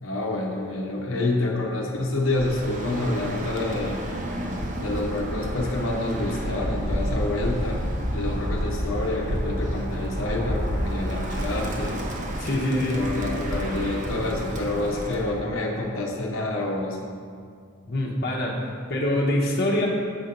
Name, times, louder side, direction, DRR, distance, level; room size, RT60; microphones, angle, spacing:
voice 1, 0.0-4.0 4.8-7.8 8.1-12.1 12.7-17.0, left 2 dB, 80° left, -1 dB, 0.9 m, -28 dB
Bird, 2.3-15.4, equal, 35° right, 0.7 m, -30 dB
voice 2, 12.4-13.0 17.9-19.9, left 1 dB, 50° left, -2 dB, 0.9 m, -25 dB
7.4 x 4.3 x 5.2 m, 2.2 s
head